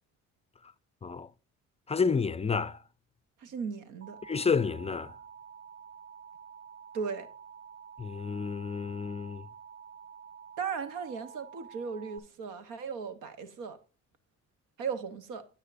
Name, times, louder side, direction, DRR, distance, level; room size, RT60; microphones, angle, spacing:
voice 1, 1.9-2.8 4.2-5.1 8.0-9.4, left 5 dB, 20° left, 0.4 m, -30 dB
voice 2, 3.4-4.2 6.9-7.3 10.6-13.8 14.8-15.5, right 6 dB, 90° right, 1.1 m, -37 dB
Alarm, 4.0-12.2, right 7 dB, 35° right, 0.8 m, -49 dB
9.7 x 8.2 x 2.6 m
cardioid pair, 90°, 30 cm